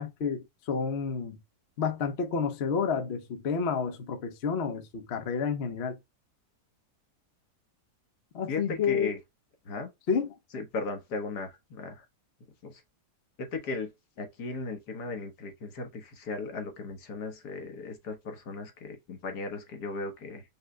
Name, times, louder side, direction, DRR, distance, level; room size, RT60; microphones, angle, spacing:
voice 1, 0.0-1.4 1.8-6.0 8.3-9.1 10.1-10.3, left 6 dB, 50° left, 0.9 m, -30 dB
voice 2, 8.5-9.2 9.6-9.9 10.5-12.0 12.6-12.8 13.4-13.9 14.2-20.4, left 3 dB, 75° left, 1.7 m, -36 dB
5.5 x 2.1 x 3.7 m
omnidirectional pair, 1.7 m